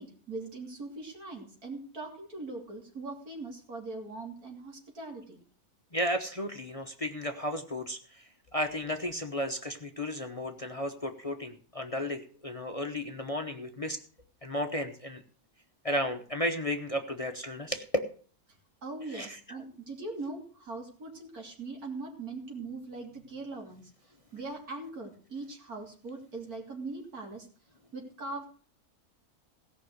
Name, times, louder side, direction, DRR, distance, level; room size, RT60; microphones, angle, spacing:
voice 1, 0.0-5.4 18.8-23.9 24.3-27.5 27.9-28.5, right 3 dB, 75° right, 1 dB, 3.6 m, -41 dB
voice 2, 5.9-8.2 8.5-14.0 14.4-15.2 15.8-17.8 19.1-19.6, equal, 25° left, 6 dB, 1.0 m, -34 dB
17.5 x 5.8 x 8.0 m, 0.43 s
omnidirectional pair, 1.6 m